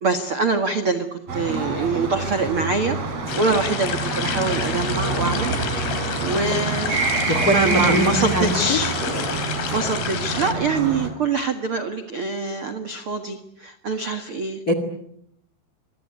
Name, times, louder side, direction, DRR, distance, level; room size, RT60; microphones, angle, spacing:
voice 1, 0.0-3.0 3.3-5.5 6.0-7.1 7.4-8.9 9.7-14.6, right 3 dB, 65° right, 8 dB, 1.3 m, -24 dB
sound 1, 1.3-11.1, right 3 dB, 35° right, 4.5 m, -26 dB
sound 2, 3.3-10.5, left 9 dB, 70° left, 4.3 m, -30 dB
voice 2, 7.3-8.8 14.7-14.8, equal, 35° left, 9 dB, 1.5 m, -21 dB
26.0 x 23.5 x 9.5 m, 0.77 s
omnidirectional pair, 5.3 m